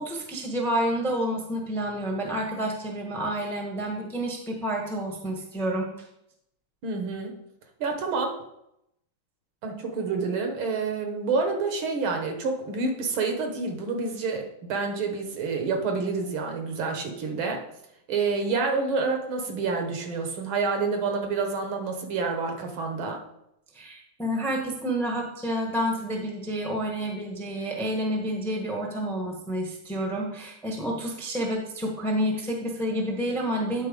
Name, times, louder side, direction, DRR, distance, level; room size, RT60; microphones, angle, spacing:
voice 1, 0.0-5.9 23.7-33.9, equal, ahead, 0 dB, 0.8 m, -29 dB
voice 2, 6.8-7.3 7.8-8.4 9.6-17.6 18.1-23.2, right 4 dB, 70° right, 4 dB, 1.9 m, -28 dB
9.8 x 4.0 x 5.2 m, 0.79 s
omnidirectional pair, 2.4 m